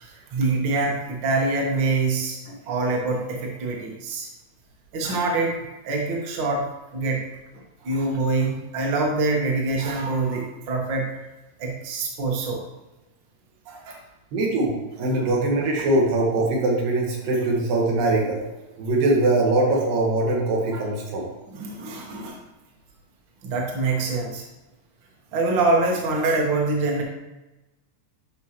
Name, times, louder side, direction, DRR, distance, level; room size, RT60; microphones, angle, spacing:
voice 1, 0.0-4.3 4.9-5.5 5.8-6.7 6.9-7.2 7.8-11.2 11.6-12.6 13.6-14.0 15.2-15.3 20.7-20.8 21.5-22.4 23.4-24.4 25.3-27.0, right 3 dB, 50° right, -1 dB, 1.6 m, -25 dB
voice 2, 14.3-18.4 18.8-21.3, right 2 dB, 90° right, -2 dB, 3.3 m, -22 dB
12.0 x 5.1 x 3.1 m, 1.1 s
omnidirectional pair, 3.8 m